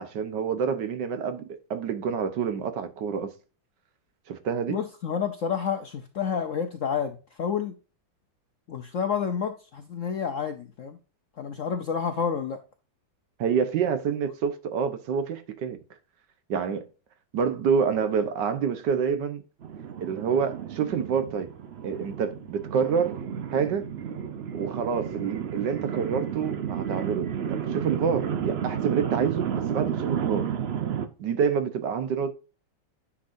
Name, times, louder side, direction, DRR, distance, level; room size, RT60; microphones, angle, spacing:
voice 1, 0.0-1.4 1.7-3.3 4.3-4.8 13.4-15.8 16.5-16.9 17.3-19.4 20.0-21.5 21.8-23.2 23.5-23.9 24.5-30.5 31.2-32.3, right 6 dB, 70° right, 1.5 m, -27 dB
voice 2, 4.7-7.7 8.7-11.0 11.4-12.6, left 7 dB, 65° left, 0.8 m, -29 dB
sound 1, 19.6-31.1, right 8 dB, 85° right, 0.5 m, -32 dB
9.9 x 6.2 x 2.6 m
omnidirectional pair, 2.1 m